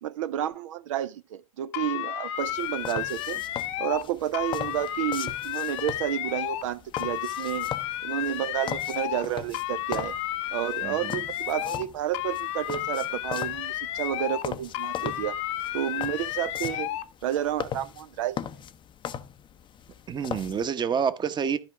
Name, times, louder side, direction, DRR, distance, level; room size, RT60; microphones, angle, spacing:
voice 1, 0.0-3.4 3.8-7.7 8.0-10.2 10.5-15.4 15.7-18.5, right 11 dB, 65° right, 0.5 m, -31 dB
sound 1, 1.7-4.1 4.3-6.7 6.9-9.3 9.5-11.9 12.1-14.5 14.7-17.1, left 14 dB, 60° left, 0.7 m, -32 dB
sound 2, 2.4-20.7, left 9 dB, 30° left, 0.6 m, -40 dB
voice 2, 10.8-11.2 20.1-21.6, right 7 dB, 25° right, 1.0 m, -28 dB
12.5 x 4.6 x 4.7 m
figure-of-eight pair, 80°, 18 cm